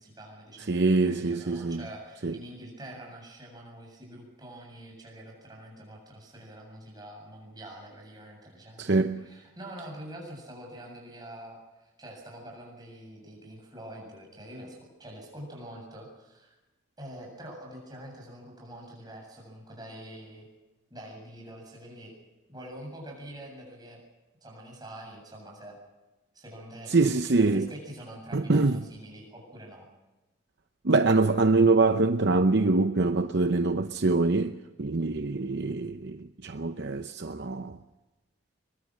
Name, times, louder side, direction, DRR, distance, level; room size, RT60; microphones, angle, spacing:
voice 1, 0.0-16.6 17.0-20.5 20.9-22.1 22.5-24.0 24.4-25.8 26.3-27.0 27.3-29.9, right 1 dB, 20° right, 7.8 m, -45 dB
voice 2, 0.7-1.8 2.2-2.3 8.8-9.2 26.9-27.7 28.3-28.8 30.8-37.8, right 3 dB, 55° right, 0.8 m, -24 dB
23.0 x 22.5 x 6.4 m
head